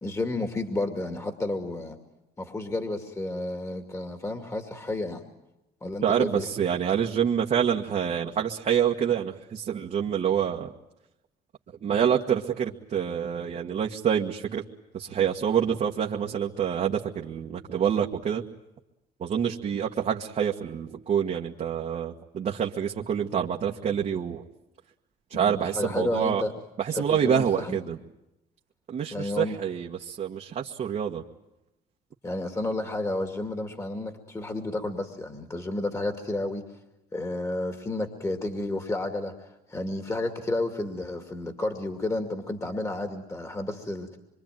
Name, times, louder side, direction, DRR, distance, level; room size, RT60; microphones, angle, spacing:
voice 1, 0.0-2.0 2.4-5.2 5.8-6.5 25.3-26.5 26.9-27.8 29.1-29.6 32.2-36.6 37.1-44.2, left 2 dB, 15° left, 5 dB, 2.4 m, -31 dB
voice 2, 6.0-10.7 11.8-14.6 14.9-18.4 19.2-24.4 25.3-26.4 26.8-28.0 28.9-31.2, right 8 dB, 45° right, -1 dB, 1.6 m, -27 dB
25.5 x 24.5 x 9.2 m, 0.91 s
cardioid pair, 110°, 17 cm